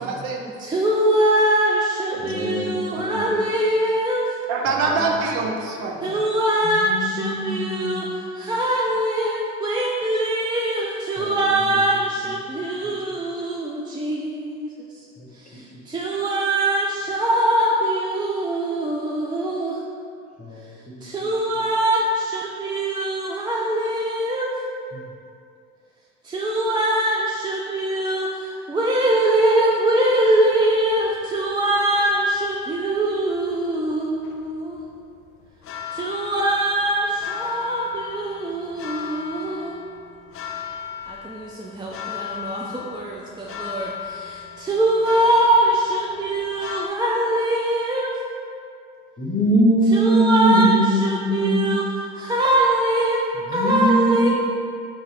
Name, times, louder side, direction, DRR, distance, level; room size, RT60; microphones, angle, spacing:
voice 1, 0.0-0.4 2.1-2.2 4.5-6.2, right 4 dB, 80° right, 1 dB, 0.6 m, -25 dB
voice 2, 0.6-4.4 6.0-15.1 15.3-19.8 21.0-24.5 26.2-34.8 35.9-39.7 41.1-48.1 49.9-51.8 52.1-54.3, right 1 dB, 15° right, -4 dB, 0.4 m, -22 dB
voice 3, 2.2-3.4 4.7-5.1 6.6-8.1 11.2-11.5 15.2-15.3 20.4-21.1 24.9-25.0 49.2-51.7 53.5-54.3, right 1 dB, 25° left, -1 dB, 0.8 m, -22 dB
sound 1, 30.5-46.9, left 8 dB, 50° left, 0.4 m, -36 dB
3.9 x 2.4 x 4.2 m, 2.4 s
supercardioid pair, 80°, 29 cm